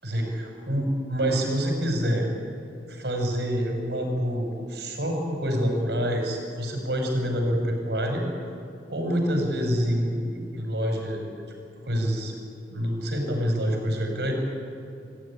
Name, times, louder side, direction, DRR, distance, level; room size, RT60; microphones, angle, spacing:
voice 1, 0.0-2.3 2.9-8.3 8.9-11.2 11.8-12.3 12.7-14.3, equal, 65° right, 2 dB, 5.9 m, -27 dB
26.0 x 15.5 x 10.0 m, 2.7 s
head